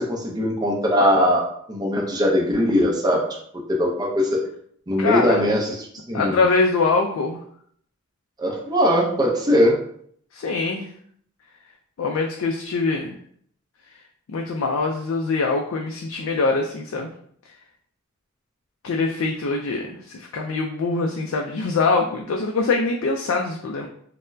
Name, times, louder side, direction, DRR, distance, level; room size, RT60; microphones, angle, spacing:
voice 1, 0.0-3.2 3.7-4.4 4.9-6.4 8.4-9.8, equal, 20° right, -1 dB, 0.5 m, -20 dB
voice 2, 5.0-5.4 6.1-7.4 10.3-10.9 12.0-13.1 14.3-17.1 18.8-23.9, left 3 dB, 65° left, 1 dB, 0.4 m, -23 dB
4.2 x 2.0 x 2.6 m, 0.63 s
head